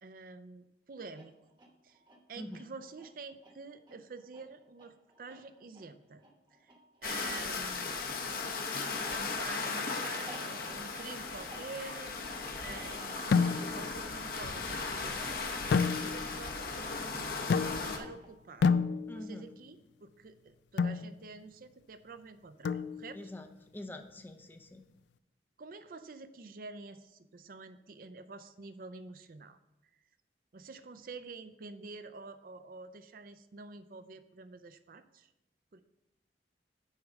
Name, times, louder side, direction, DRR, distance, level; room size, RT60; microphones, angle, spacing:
voice 1, 0.0-1.3 1.8-2.0 2.3-6.2 6.6-6.7 7.0-8.0 9.0-17.3 17.6-18.7 19.1-23.3 25.6-29.6 30.5-35.3 35.7-35.8, right 4 dB, 50° right, 11 dB, 0.5 m, -48 dB
sound 1, 1.0-16.8 17.8-18.7, right 1 dB, 25° right, 1.0 m, -56 dB
sound 2, 7.0-18.0, left 4 dB, 55° left, 0.8 m, -37 dB
sound 3, 13.3-13.9 15.7-16.4 17.5-18.1 18.6-19.4 20.8-21.1 22.6-23.3, left 5 dB, 75° left, 0.3 m, -29 dB
voice 2, 19.1-19.4 23.1-23.5 23.7-24.8, left 1 dB, 10° left, 6 dB, 0.5 m, -44 dB
6.4 x 4.7 x 6.3 m, 0.90 s
head